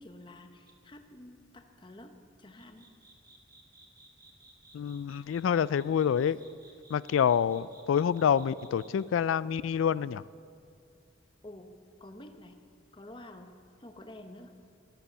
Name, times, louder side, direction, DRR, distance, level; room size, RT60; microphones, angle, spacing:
voice 1, 0.0-2.9 11.4-11.7 12.0-12.6 12.9-13.5 13.8-14.6, left 1 dB, 25° left, 6 dB, 0.9 m, -49 dB
sound 1, 0.7-0.9 2.6-9.0, right 2 dB, 20° right, 1.8 m, -57 dB
voice 2, 4.7-6.4 6.9-10.2, left 8 dB, 80° left, 18 dB, 0.3 m, -27 dB
14.0 x 13.0 x 6.9 m, 2.4 s
head